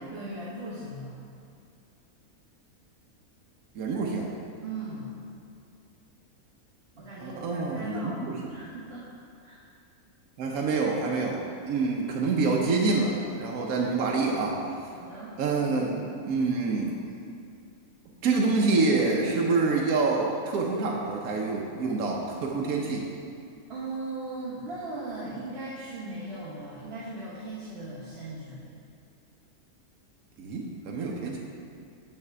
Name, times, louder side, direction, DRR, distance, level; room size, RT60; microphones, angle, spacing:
voice 1, 0.1-1.1 4.6-5.1 7.0-9.1 9.4-9.6 14.9-15.4 23.7-28.6, right 2 dB, 45° right, -9 dB, 1.3 m, -38 dB
voice 2, 3.7-4.3 7.2-8.5 10.4-14.5 15.4-17.0 18.2-23.1 30.4-31.4, right 3 dB, 75° right, -1 dB, 1.2 m, -27 dB
9.0 x 3.6 x 6.7 m, 2.5 s
omnidirectional pair, 1.6 m